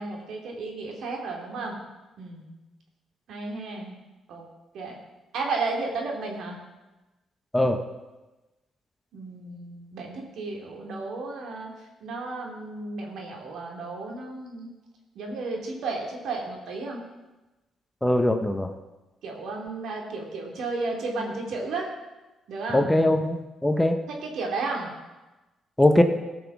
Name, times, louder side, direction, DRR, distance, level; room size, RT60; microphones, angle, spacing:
voice 1, 0.0-1.8 2.2-2.5 3.3-3.9 4.3-4.4 4.7-5.0 5.3-6.6 9.1-11.7 12.0-14.7 15.1-17.0 19.2-21.9 22.5-22.8 24.3-24.9, right 3 dB, 75° right, 0 dB, 2.8 m, -33 dB
voice 2, 18.0-18.7 22.7-24.0 25.8-26.0, left 1 dB, 10° left, 6 dB, 1.0 m, -21 dB
15.5 x 6.2 x 6.1 m, 1.1 s
cardioid pair, 90°, 0 cm